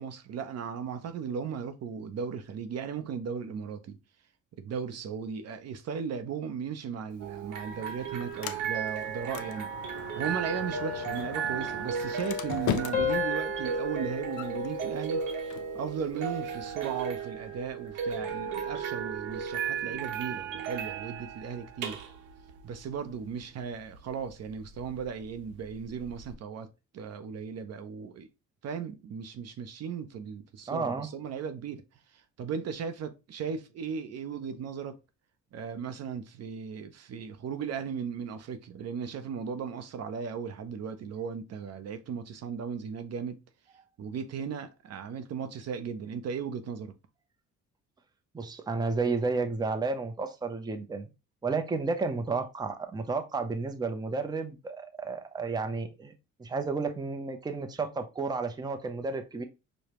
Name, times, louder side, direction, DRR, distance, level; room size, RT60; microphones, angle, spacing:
voice 1, 0.0-4.0 4.6-9.7 10.2-15.2 15.7-22.0 22.6-26.7 26.9-28.3 28.6-31.8 32.1-35.0 35.5-43.4 44.0-46.9, right 6 dB, 55° right, 0.6 m, -36 dB
Sliding door, 7.1-17.1, left 10 dB, 80° left, 0.5 m, -41 dB
sound 1, 7.2-26.3, right 6 dB, 80° right, 0.8 m, -35 dB
sound 2, 10.7-12.6 12.9-15.5 16.0-16.3, left 9 dB, 25° left, 1.0 m, -36 dB
voice 2, 30.7-31.1 48.3-51.1 51.4-56.1 56.4-59.4, right 4 dB, 15° right, 0.5 m, -32 dB
4.8 x 2.1 x 2.9 m
cardioid pair, 90°, 30 cm